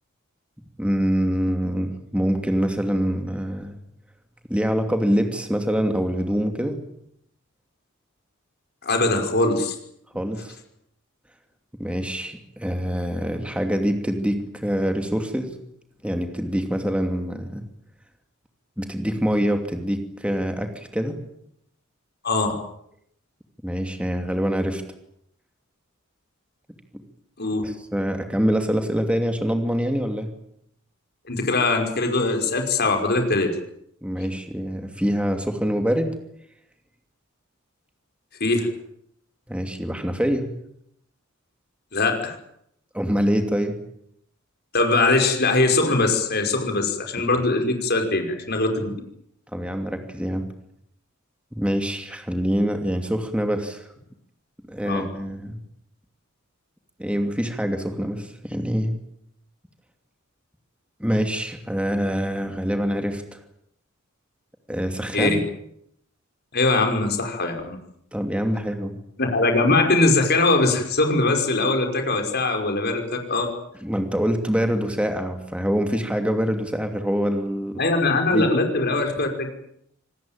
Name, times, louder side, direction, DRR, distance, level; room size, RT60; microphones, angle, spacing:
voice 1, 0.8-3.7 4.5-6.8 10.1-10.6 11.8-15.5 16.0-17.6 18.8-21.2 23.6-24.8 26.9-27.0 27.6-30.3 34.0-36.1 39.5-40.5 42.9-43.8 49.5-50.5 51.5-53.9 54.7-55.6 57.0-59.0 61.0-63.4 64.7-65.4 68.1-69.0 73.8-77.8 78.3-78.5, equal, 5° right, 5 dB, 2.7 m, -25 dB
voice 2, 8.8-9.8 22.2-22.6 27.4-27.6 31.3-33.5 38.4-38.7 41.9-42.4 44.7-48.9 54.9-55.0 65.1-65.4 66.5-67.8 69.2-73.5 77.8-79.5, left 2 dB, 50° left, 5 dB, 5.5 m, -21 dB
26.5 x 19.5 x 9.0 m, 0.74 s
head